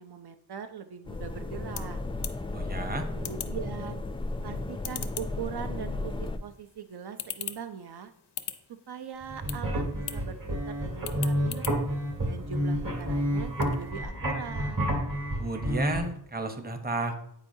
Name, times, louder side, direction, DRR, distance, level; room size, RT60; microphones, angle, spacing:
voice 1, 0.0-2.0 3.1-4.0 4.4-8.1 8.9-11.7 12.2-14.8, right 7 dB, 70° right, 8 dB, 0.5 m, -41 dB
sound 1, 1.1-13.9, left 9 dB, 85° left, 0.6 m, -44 dB
sound 2, 1.1-6.4, left 2 dB, 15° left, 0.3 m, -34 dB
voice 2, 2.5-3.1 15.4-17.1, right 2 dB, 25° right, 6 dB, 0.8 m, -32 dB
sound 3, 9.2-16.0, equal, 55° right, 1.8 m, -30 dB
9.0 x 4.5 x 2.7 m, 0.71 s
wide cardioid pair, 70°, 40 cm